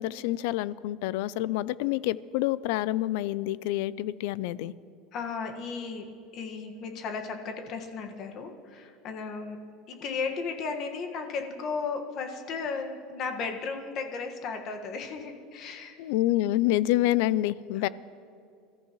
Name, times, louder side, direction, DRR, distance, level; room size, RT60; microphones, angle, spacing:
voice 1, 0.0-4.7 16.0-17.9, left 15 dB, 70° left, 19 dB, 0.4 m, -27 dB
voice 2, 5.1-6.1 6.3-9.6 9.9-15.9 17.7-17.9, left 5 dB, 40° left, 4 dB, 1.6 m, -35 dB
27.5 x 14.0 x 3.1 m, 2.4 s
supercardioid pair, 155°, 0 cm